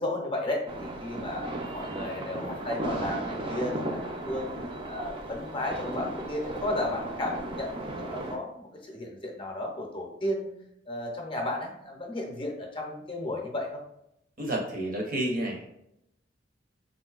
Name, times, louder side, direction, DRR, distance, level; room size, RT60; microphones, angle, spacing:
voice 1, 0.0-1.5 1.7-4.6 4.9-10.5 10.9-13.8, left 1 dB, 30° left, 0 dB, 0.6 m, -33 dB
sound 1, 0.7-8.4, right 1 dB, 30° right, 0.4 m, -35 dB
voice 2, 14.4-15.7, right 1 dB, 50° right, 1 dB, 0.8 m, -30 dB
3.7 x 2.7 x 2.4 m, 0.80 s
head